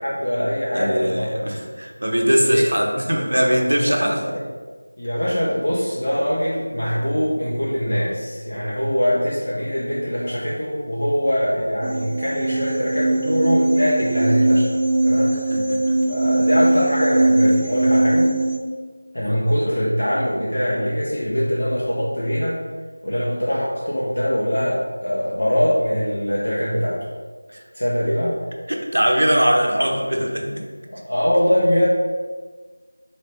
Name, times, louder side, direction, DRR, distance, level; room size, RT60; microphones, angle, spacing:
voice 1, 0.0-1.6 2.4-2.6 3.5-4.4 5.0-15.4 16.1-18.3 19.1-22.6 23.0-27.0 27.7-28.3 30.9-31.9, equal, 75° left, -7 dB, 0.9 m, -22 dB
voice 2, 0.7-4.2 15.3-16.0 19.6-19.7 27.5-27.6 28.7-30.6, equal, 90° right, 0 dB, 0.8 m, -21 dB
sound 1, 11.8-18.6, right 2 dB, 20° right, 0.3 m, -20 dB
4.0 x 3.2 x 3.4 m, 1.4 s
figure-of-eight pair, 175°, 0 cm